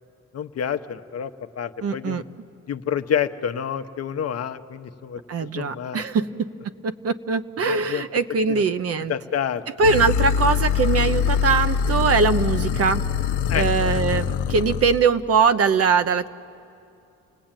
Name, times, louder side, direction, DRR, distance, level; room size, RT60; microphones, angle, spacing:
voice 1, 0.3-2.2 2.7-6.0 7.6-8.0 8.5-8.6 9.1-9.6 13.5-14.3, left 8 dB, 55° left, 8 dB, 0.9 m, -29 dB
voice 2, 1.8-2.2 5.3-6.5 6.8-9.1 9.8-13.0 13.5-16.3, right 5 dB, 50° right, 11 dB, 0.9 m, -21 dB
sound 1, 9.8-15.0, left 7 dB, 90° left, 0.8 m, -23 dB
29.5 x 19.0 x 9.0 m, 2.6 s
cardioid pair, 90°, 30 cm